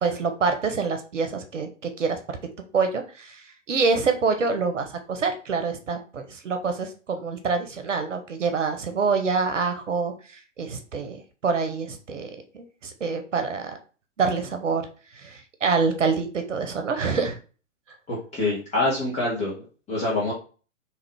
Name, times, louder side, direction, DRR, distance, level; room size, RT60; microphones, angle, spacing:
voice 1, 0.0-2.2 2.7-10.1 10.6-11.2 11.4-13.7 14.2-14.8 15.2-17.4, right 4 dB, 70° right, 6 dB, 0.9 m, -26 dB
voice 2, 18.1-20.3, left 2 dB, 15° left, -7 dB, 1.3 m, -26 dB
3.7 x 2.9 x 3.4 m, 0.36 s
figure-of-eight pair, 115°, 38 cm